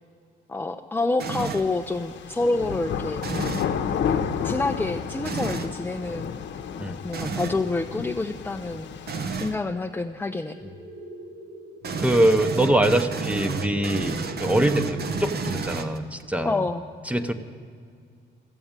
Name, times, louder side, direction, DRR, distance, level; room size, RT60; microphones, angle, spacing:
voice 1, 0.5-3.2 4.4-6.3 7.0-8.9 9.4-10.6 16.4-16.8, left 2 dB, 10° left, 4 dB, 0.5 m, -27 dB
sound 1, 1.2-1.7 3.2-3.8 5.2-5.7 7.1-7.6 9.1-9.6 11.8-16.2, right 5 dB, 55° right, 0.9 m, -31 dB
sound 2, 1.6-9.5, left 7 dB, 65° left, 0.9 m, -31 dB
sound 3, 10.5-15.5, right 1 dB, 80° right, 3.6 m, -42 dB
voice 2, 12.0-16.6 17.1-17.3, right 1 dB, 5° right, 9 dB, 0.9 m, -23 dB
14.5 x 7.8 x 8.8 m, 2.2 s
cardioid pair, 90°, 20 cm